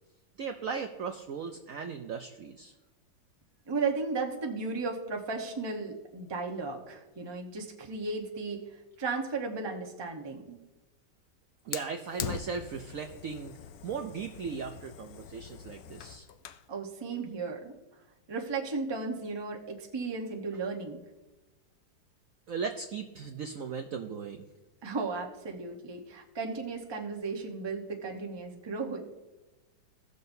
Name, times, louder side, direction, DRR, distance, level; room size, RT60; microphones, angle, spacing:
voice 1, 0.4-2.7 11.7-13.5 13.8-16.3 22.5-24.4, right 5 dB, 65° right, 5 dB, 0.8 m, -37 dB
voice 2, 3.7-8.6 9.0-10.6 16.7-17.7 18.3-21.0 24.8-29.1, right 4 dB, 25° right, 1 dB, 0.6 m, -35 dB
Fire, 11.7-16.7, left 10 dB, 75° left, 0.9 m, -42 dB
16.5 x 6.6 x 2.7 m, 1.1 s
omnidirectional pair, 2.0 m